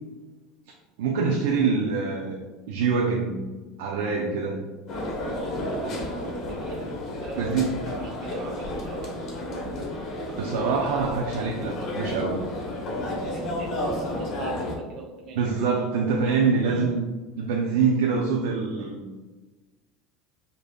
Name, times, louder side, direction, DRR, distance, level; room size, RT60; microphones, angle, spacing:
voice 1, 1.0-2.4 2.7-3.4 3.8-4.7 7.4-7.7 10.4-12.4 15.4-17.0 17.4-19.0, right 5 dB, 85° right, 0 dB, 0.4 m, -25 dB
sound 1, 4.9-14.7, left 1 dB, 45° left, 1.0 m, -32 dB
voice 2, 5.0-9.2 13.3-15.5 16.6-16.9, right 2 dB, 50° right, 1 dB, 0.8 m, -42 dB
5.1 x 2.6 x 2.3 m, 1.2 s
supercardioid pair, 110°, 0 cm